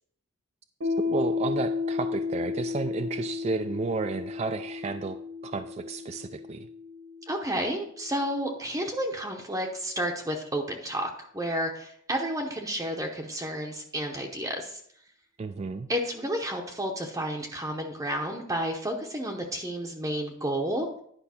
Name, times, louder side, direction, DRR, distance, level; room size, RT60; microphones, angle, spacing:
Piano, 0.8-8.1, left 4 dB, 85° right, 1.7 m, -33 dB
voice 1, 1.0-5.2 5.4-6.7 15.4-15.9, right 4 dB, 30° right, 8 dB, 0.3 m, -32 dB
voice 2, 7.3-14.8 15.9-20.9, equal, 15° right, 1 dB, 0.7 m, -31 dB
10.5 x 5.3 x 4.3 m, 0.67 s
head